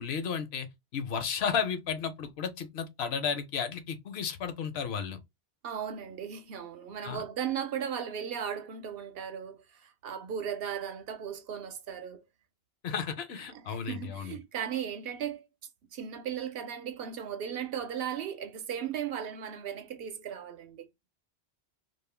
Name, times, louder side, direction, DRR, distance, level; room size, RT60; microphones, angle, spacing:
voice 1, 0.0-5.2 7.0-7.2 12.8-14.4, left 7 dB, 75° left, 0.9 m, -33 dB
voice 2, 5.6-12.3 13.5-15.5 15.9-20.9, right 8 dB, 70° right, 0.8 m, -36 dB
2.4 x 2.1 x 3.1 m
omnidirectional pair, 1.1 m